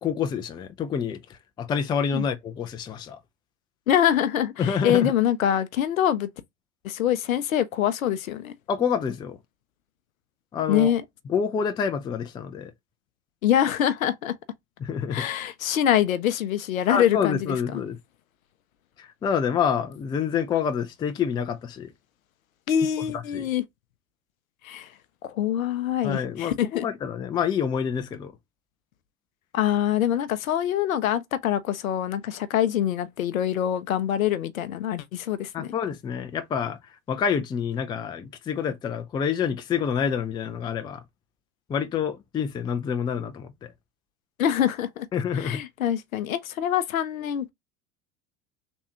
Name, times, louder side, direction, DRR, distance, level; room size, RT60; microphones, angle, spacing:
voice 1, 0.0-1.2 1.6-3.2 4.6-5.1 8.7-9.4 10.5-10.9 11.3-12.7 14.8-15.2 16.9-18.0 19.0-21.9 23.3-23.5 26.0-28.3 35.5-36.8 37.1-41.0 41.7-43.7 45.1-45.6, left 7 dB, 10° left, 0.3 m, -27 dB
voice 2, 3.9-6.3 6.8-8.5 10.7-11.0 13.4-14.4 15.1-17.8 22.7-23.6 24.6-24.9 25.2-26.9 29.5-35.7 44.4-45.1 45.4-47.5, left 10 dB, 75° left, 0.7 m, -24 dB
3.4 x 3.0 x 2.9 m
figure-of-eight pair, 75°, 41 cm